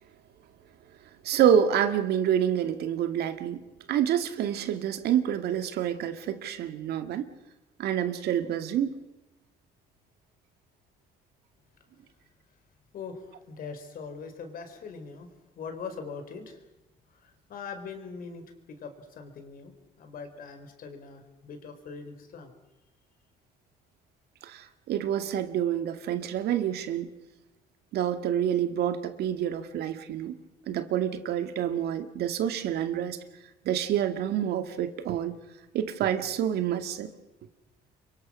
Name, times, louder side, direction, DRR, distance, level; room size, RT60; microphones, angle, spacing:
voice 1, 1.2-3.6 3.9-7.3 7.8-9.0 24.4-27.1 27.9-30.3 30.7-33.2 33.7-35.4 35.7-37.1, right 9 dB, 70° right, 8 dB, 2.1 m, -27 dB
voice 2, 12.9-15.3 15.6-16.6 17.2-22.5, left 5 dB, 60° left, 7 dB, 4.6 m, -42 dB
28.5 x 23.5 x 6.3 m, 1.0 s
cardioid pair, 110°, 17 cm